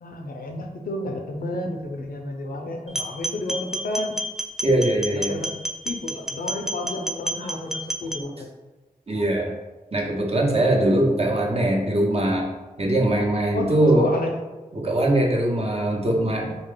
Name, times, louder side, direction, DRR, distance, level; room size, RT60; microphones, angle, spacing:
voice 1, 0.0-4.2 5.1-8.5 13.5-14.3, left 1 dB, 75° left, 3 dB, 0.5 m, -31 dB
sound 1, 2.9-8.2, right 1 dB, 5° right, 0.3 m, -30 dB
voice 2, 4.6-5.4 7.4-7.5 9.1-9.5 9.9-12.5 12.8-14.1 14.7-16.6, right 1 dB, 40° right, -1 dB, 0.8 m, -21 dB
3.4 x 2.3 x 3.7 m, 1.1 s
cardioid pair, 45°, 15 cm